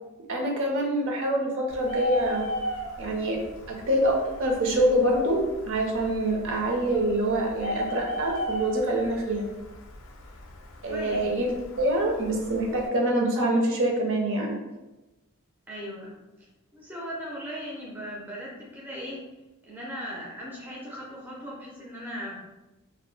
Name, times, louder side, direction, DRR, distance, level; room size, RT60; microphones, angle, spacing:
voice 1, 0.3-2.5 3.0-3.4 3.7-5.4 5.7-9.5 10.8-11.5 11.8-14.5, right 1 dB, 60° right, 0 dB, 0.5 m, -25 dB
Bird, 1.7-12.9, equal, 60° left, 0.4 m, -37 dB
voice 2, 10.9-11.2 15.7-16.2 16.7-19.2 19.6-22.4, equal, 10° right, -5 dB, 0.4 m, -38 dB
2.1 x 2.0 x 3.1 m, 1.0 s
head